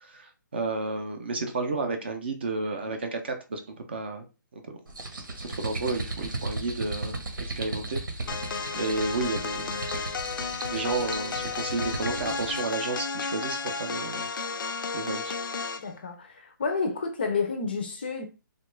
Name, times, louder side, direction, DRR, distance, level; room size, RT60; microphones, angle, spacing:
voice 1, 0.0-4.2 4.5-4.6 5.1-8.3 8.8-9.9 10.7-14.5 14.9-15.4, right 3 dB, 30° right, 0.5 m, -32 dB
sound 1, 4.9-12.7, right 2 dB, 80° right, 1.0 m, -36 dB
sound 2, 8.3-15.9, left 5 dB, 85° left, 0.4 m, -33 dB
voice 2, 15.8-18.2, left 4 dB, 30° left, 0.5 m, -30 dB
3.0 x 2.3 x 3.1 m
hypercardioid pair, 175°, 11 cm